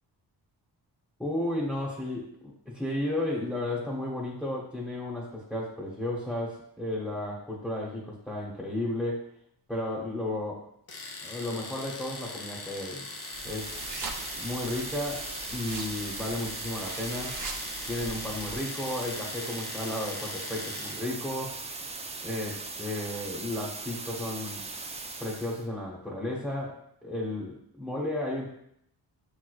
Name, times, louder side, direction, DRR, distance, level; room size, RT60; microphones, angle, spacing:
voice 1, 1.2-2.3 2.7-9.2 9.7-10.7 11.2-13.0 13.4-14.0 14.4-17.4 17.9-21.6 22.2-24.6 25.2-28.5, left 1 dB, 5° left, -5 dB, 0.9 m, -33 dB
Domestic sounds home sounds, 10.9-21.1, left 3 dB, 60° left, 0.8 m, -41 dB
sound 1, 13.0-25.7, right 3 dB, 20° right, 0.3 m, -39 dB
sound 2, 13.3-18.6, right 3 dB, 50° right, 0.8 m, -42 dB
6.8 x 3.2 x 2.3 m, 0.72 s
wide cardioid pair, 95°, 41 cm